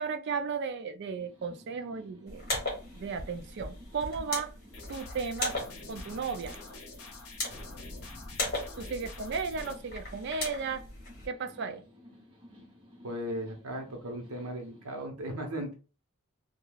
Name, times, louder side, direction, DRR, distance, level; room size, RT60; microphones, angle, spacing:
voice 1, 0.0-2.5 2.9-4.5 4.9-5.6 5.9-6.6 8.8-10.9 11.3-11.8, right 5 dB, 50° right, 0.3 m, -35 dB
sound 1, 1.2-15.1, left 1 dB, 20° right, 0.7 m, -55 dB
sound 2, 2.3-11.3, left 2 dB, 40° left, 1.2 m, -39 dB
sound 3, 4.7-9.7, left 2 dB, 65° left, 0.8 m, -45 dB
voice 2, 13.0-15.7, equal, 75° right, 0.8 m, -37 dB
2.3 x 2.3 x 3.1 m
head